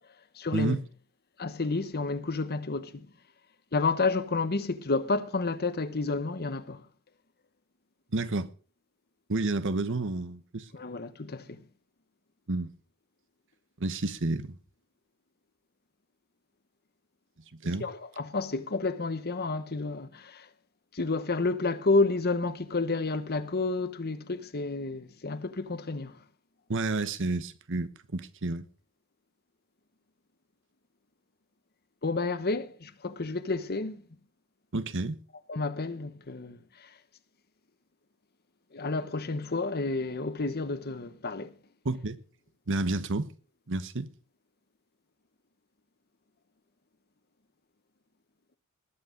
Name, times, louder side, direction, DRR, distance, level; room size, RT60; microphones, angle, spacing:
voice 1, 0.4-0.7 1.4-3.1 3.7-6.8 10.7-11.6 17.8-20.5 20.9-26.2 32.0-34.0 35.5-36.6 38.7-41.5, left 3 dB, 45° left, 1.1 m, -30 dB
voice 2, 8.1-8.5 9.3-10.7 12.5-12.7 13.8-14.6 17.5-17.9 26.7-28.7 34.7-35.2 41.8-42.2 42.7-43.3 43.7-44.1, right 2 dB, 60° right, 1.1 m, -30 dB
19.5 x 8.6 x 5.3 m
head